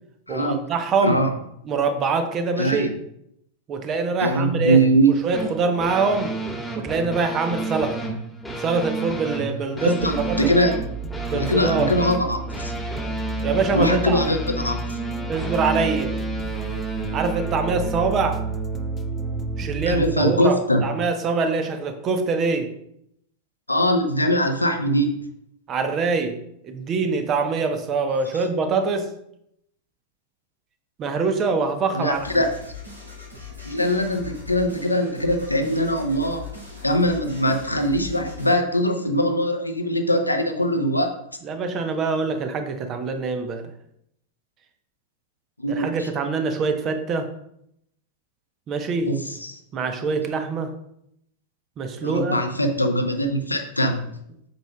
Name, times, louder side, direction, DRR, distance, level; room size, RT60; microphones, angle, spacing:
voice 1, 0.3-1.2 1.7-2.9 3.7-4.8 5.2-6.4 6.7-8.0 8.6-10.5 11.3-11.9 13.4-14.3 15.3-16.2 17.1-18.4 19.6-22.7 25.7-29.1 31.0-32.4 41.4-43.7 45.7-47.3 48.7-49.1 49.7-50.7 51.8-52.4, right 4 dB, 30° right, 7 dB, 0.9 m, -24 dB
voice 2, 1.0-1.3 2.6-2.9 4.2-5.2 9.8-10.7 11.3-12.7 13.7-14.8 19.9-20.8 23.7-25.2 28.3-28.4 31.9-32.5 33.6-36.5 36.8-41.1 45.6-46.1 49.1-49.6 52.0-54.1, equal, 85° left, 5 dB, 0.8 m, -22 dB
sound 1, 5.3-20.2, right 3 dB, 5° left, 1.5 m, -31 dB
sound 2, 10.0-20.1, right 2 dB, 20° left, 0.5 m, -33 dB
sound 3, 32.1-38.5, left 5 dB, 85° right, 2.5 m, -40 dB
7.8 x 6.5 x 2.3 m, 0.74 s
figure-of-eight pair, 90°, 0 cm